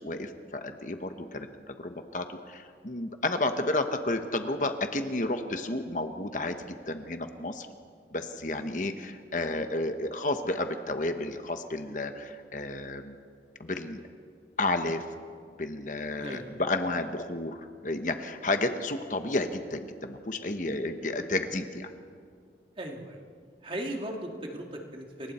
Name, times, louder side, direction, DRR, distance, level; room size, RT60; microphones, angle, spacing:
voice 1, 0.0-7.7 8.1-13.2 13.6-14.0 14.6-15.0 15.6-21.9, left 2 dB, 45° left, 7 dB, 1.2 m, -31 dB
voice 2, 16.2-16.6 22.8-23.3 23.6-25.3, right 1 dB, 30° right, 2 dB, 2.2 m, -38 dB
28.5 x 24.0 x 4.4 m, 2.1 s
head